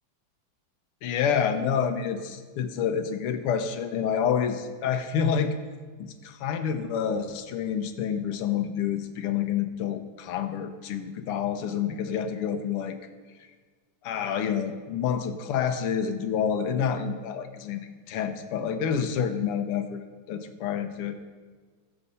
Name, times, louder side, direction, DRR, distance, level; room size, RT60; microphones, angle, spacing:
voice 1, 1.0-5.6 6.0-13.0 14.0-21.2, left 7 dB, 90° left, 8 dB, 1.7 m, -28 dB
20.5 x 6.9 x 4.1 m, 1.5 s
omnidirectional pair, 2.4 m